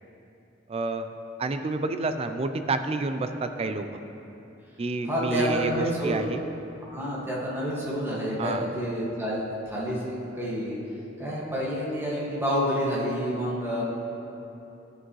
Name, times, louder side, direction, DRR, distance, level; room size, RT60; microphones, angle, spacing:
voice 1, 0.7-1.1 1.4-3.9 4.8-6.4 8.4-8.7, right 3 dB, 30° right, 8 dB, 0.4 m, -29 dB
voice 2, 5.0-6.2 6.9-9.4 9.7-10.8 11.2-13.8, equal, 15° right, -7 dB, 1.8 m, -28 dB
13.0 x 6.2 x 3.1 m, 2.9 s
head